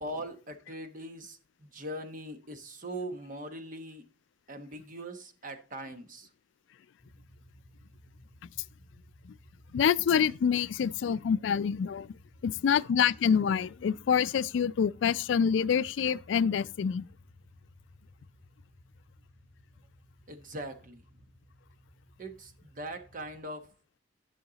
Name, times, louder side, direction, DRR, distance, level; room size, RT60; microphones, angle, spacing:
voice 1, 0.0-4.0 4.5-6.3 20.3-21.0 22.2-23.7, right 1 dB, 45° right, 1.2 m, -41 dB
sound 1, 7.0-23.4, left 1 dB, ahead, 2.9 m, -58 dB
voice 2, 9.7-12.1 12.4-17.1, left 7 dB, 70° left, 0.3 m, -26 dB
11.5 x 6.4 x 3.9 m
head